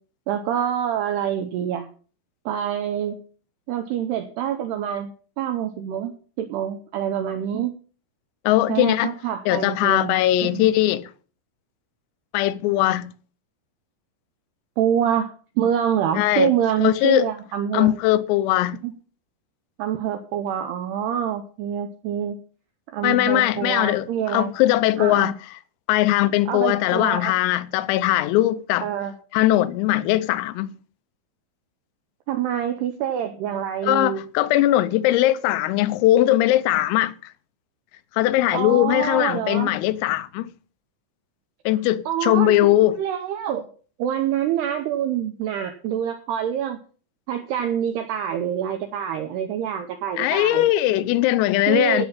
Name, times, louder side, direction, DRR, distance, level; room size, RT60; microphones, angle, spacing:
voice 1, 0.3-1.9 2.5-3.2 3.7-7.7 8.7-10.7 14.8-18.0 18.8-18.9 19.8-22.4 22.9-24.5 25.0-25.3 26.5-27.3 28.8-29.1 32.3-34.2 38.5-39.7 42.1-43.7 44.0-46.8 47.3-50.6 51.7-52.1, right 9 dB, 85° right, 2.4 m, -26 dB
voice 2, 8.5-9.1 9.5-11.1 12.3-13.1 16.2-16.5 16.8-17.3 17.7-18.8 23.0-25.3 25.9-28.9 29.3-30.8 33.8-37.1 38.1-40.5 41.7-43.0 50.2-52.1, left 14 dB, 90° left, 3.4 m, -20 dB
15.5 x 6.2 x 5.5 m
omnidirectional pair, 5.9 m